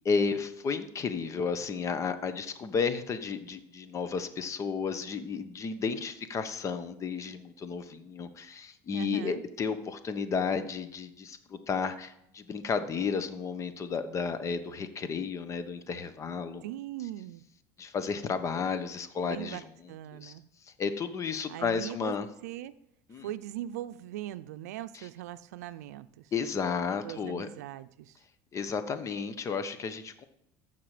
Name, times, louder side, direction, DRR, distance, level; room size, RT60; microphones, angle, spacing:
voice 1, 0.0-16.6 17.8-19.6 20.1-20.3 20.6-22.3 23.1-23.3 24.9-25.1 26.3-27.5 28.5-30.2, left 5 dB, 35° left, 11 dB, 1.2 m, -32 dB
voice 2, 8.9-9.4 16.6-17.4 19.2-20.4 21.5-22.1 22.4-22.8 23.2-26.3 27.0-28.2, right 13 dB, 90° right, 14 dB, 0.5 m, -40 dB
14.0 x 5.9 x 5.0 m, 0.77 s
supercardioid pair, 95°, 8 cm